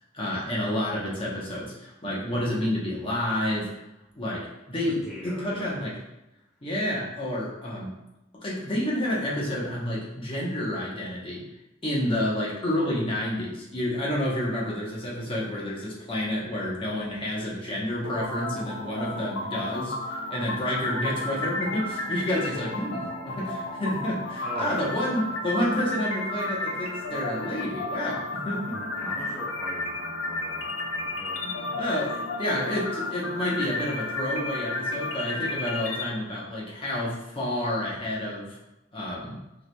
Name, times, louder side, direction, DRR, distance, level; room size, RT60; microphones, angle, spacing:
voice 1, 0.1-3.7 4.1-4.4 4.7-6.0 6.6-7.9 8.4-11.4 11.8-28.7 31.4-38.6 38.9-39.4, left 1 dB, 25° left, -5 dB, 0.8 m, -29 dB
voice 2, 5.0-5.8 24.4-25.0 28.7-31.4, right 1 dB, ahead, -7 dB, 0.4 m, -40 dB
sound 1, 18.0-36.0, left 2 dB, 85° left, 0.6 m, -33 dB
4.7 x 3.0 x 2.2 m, 0.91 s
head